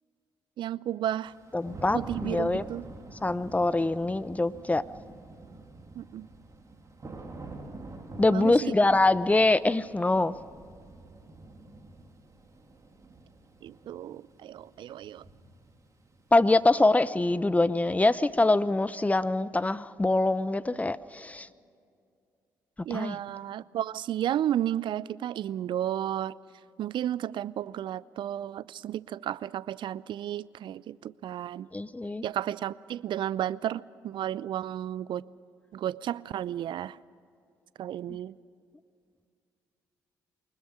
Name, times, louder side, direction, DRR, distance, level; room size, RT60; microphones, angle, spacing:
voice 1, 0.6-1.3 1.9-2.9 5.9-6.3 8.3-8.7 13.6-15.2 22.8-26.3 26.8-31.7 32.2-35.2 35.7-37.0 37.8-38.4, right 11 dB, 60° right, 21 dB, 0.5 m, -33 dB
Thunder / Rain, 1.3-17.0, right 2 dB, 35° right, 3.3 m, -47 dB
voice 2, 1.5-2.6 3.2-4.8 8.2-10.3 16.3-21.5 22.9-23.2 31.7-32.2, left 2 dB, 15° left, 16 dB, 0.8 m, -24 dB
24.0 x 20.0 x 6.4 m, 2.4 s
hypercardioid pair, 45°, 9 cm